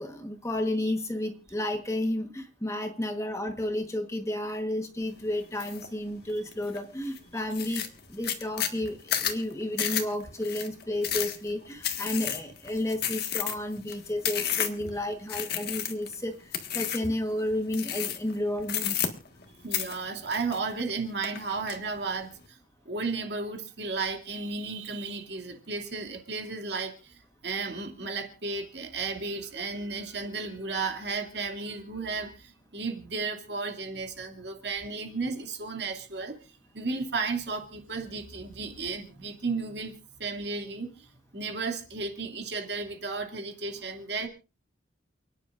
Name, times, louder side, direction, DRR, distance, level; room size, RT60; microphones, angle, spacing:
voice 1, 0.0-7.8 8.1-16.4 16.7-19.1, left 1 dB, 15° left, 6 dB, 1.2 m, -32 dB
sound 1, 5.6-5.9 6.3-6.8 7.2-7.3 7.5-14.9 15.3-16.1 16.5-17.1 17.7-18.3 18.6-19.5 19.7-20.9 21.2-21.8, left 9 dB, 55° left, 1.6 m, -31 dB
voice 2, 19.6-22.6 22.9-36.4 36.7-39.9 40.2-41.1 41.3-44.3, right 4 dB, 60° right, 3 dB, 2.5 m, -34 dB
29.5 x 10.0 x 2.5 m, 0.33 s
head